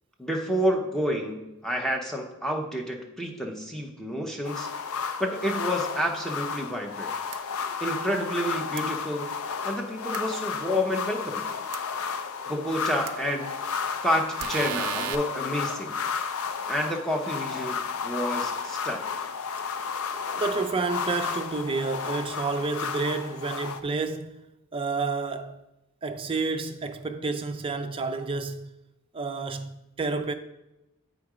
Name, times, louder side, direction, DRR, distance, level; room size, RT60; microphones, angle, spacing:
voice 1, 0.2-4.7 5.0-7.1 7.8-9.3 9.6-11.4 12.5-13.5 14.0-16.0 16.7-19.0, equal, ahead, 0.8 m, -29 dB
sound 1, 4.4-23.8, left 6 dB, 65° left, 0.5 m, -32 dB
sound 2, 7.3-7.4 8.8-8.9 10.1-10.2 11.7-11.8 13.1-13.2 14.4-15.2, right 10 dB, 85° right, 0.4 m, -33 dB
voice 2, 20.3-24.4 24.7-25.6 26.0-28.7 29.1-30.3, right 4 dB, 25° right, 0.4 m, -30 dB
7.6 x 3.7 x 4.9 m
head